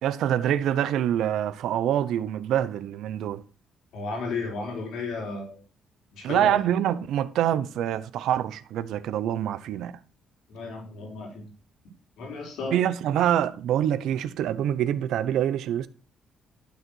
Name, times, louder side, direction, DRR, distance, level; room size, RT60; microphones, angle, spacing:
voice 1, 0.0-3.4 6.2-10.0 12.7-15.9, right 10 dB, 80° right, 0.7 m, -25 dB
voice 2, 3.9-5.6 6.1-6.6 10.5-11.5 12.2-12.8, left 3 dB, 80° left, 4.0 m, -33 dB
11.5 x 4.0 x 6.3 m
cardioid pair, 90°, 0 cm